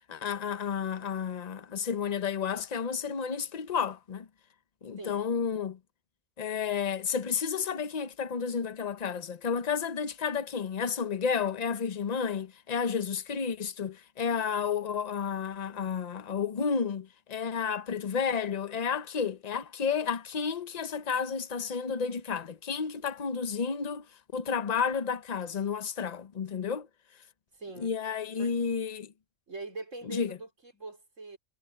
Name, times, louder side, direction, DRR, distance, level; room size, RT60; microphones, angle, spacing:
voice 1, 0.1-4.3 4.8-5.8 6.4-24.1 24.3-26.9 27.8-29.1 30.1-30.4, left 6 dB, 35° left, 0.8 m, -31 dB
voice 2, 27.5-27.9 28.4-28.5 29.5-31.4, right 3 dB, 65° right, 4.9 m, -42 dB
omnidirectional pair, 1.4 m